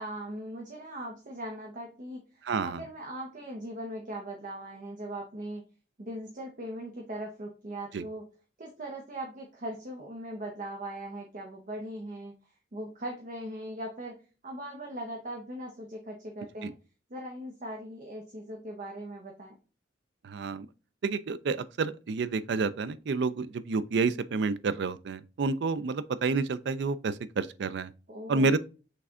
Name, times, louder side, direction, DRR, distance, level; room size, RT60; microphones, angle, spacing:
voice 1, 0.0-5.6 6.0-8.2 8.6-12.3 12.7-16.7 17.1-19.6 28.1-28.6, right 1 dB, 45° right, 0.8 m, -40 dB
voice 2, 2.5-2.8 7.9-8.0 16.6-16.7 20.2-20.7 21.0-27.9 28.3-28.6, right 4 dB, 65° right, 0.4 m, -29 dB
6.0 x 3.3 x 2.4 m
head